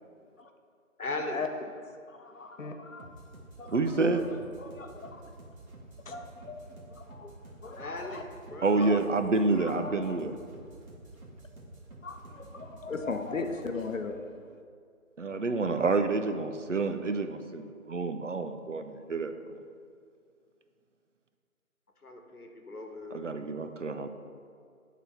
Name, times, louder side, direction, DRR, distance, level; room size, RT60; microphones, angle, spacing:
voice 1, 1.0-1.4 7.8-8.2 8.5-9.0 22.0-23.2, left 2 dB, 90° left, 3 dB, 1.3 m, -38 dB
voice 2, 2.1-3.1 3.6-4.2 4.6-5.2 6.1-7.4 7.6-8.2 8.8-9.0 9.6-10.2 12.0-14.2, left 4 dB, 60° left, 6 dB, 0.8 m, -38 dB
sound 1, 3.0-14.0, right 2 dB, 75° right, 1.4 m, -50 dB
voice 3, 3.7-4.3 8.6-10.4 15.2-19.6 23.1-24.1, right 3 dB, 60° right, 8 dB, 0.5 m, -28 dB
9.1 x 4.0 x 4.2 m, 2.2 s
figure-of-eight pair, 170°, 43 cm